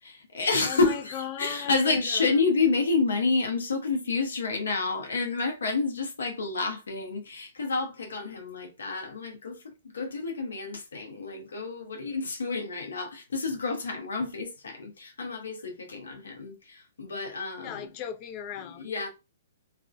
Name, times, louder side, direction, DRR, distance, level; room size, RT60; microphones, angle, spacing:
voice 1, 0.0-17.9 18.8-19.1, left 3 dB, 85° left, 0.6 m, -29 dB
voice 2, 0.6-2.3 17.6-18.9, left 9 dB, 35° left, 0.4 m, -37 dB
2.5 x 2.0 x 2.4 m
hypercardioid pair, 135°, 0 cm